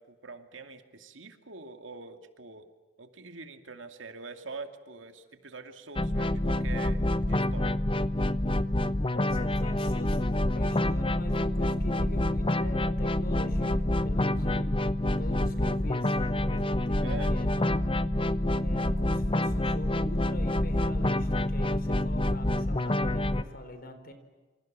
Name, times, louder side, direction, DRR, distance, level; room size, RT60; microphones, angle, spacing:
voice 1, 0.0-2.7 3.0-7.0 7.3-7.8 17.0-17.4, right 4 dB, 75° right, 7 dB, 2.5 m, -44 dB
sound 1, 6.0-23.4, left 1 dB, 25° left, 0.9 m, -27 dB
voice 2, 9.1-14.8 15.2-17.7 18.6-24.1, left 1 dB, 50° left, 9 dB, 4.2 m, -43 dB
28.0 x 26.5 x 7.5 m, 1.3 s
head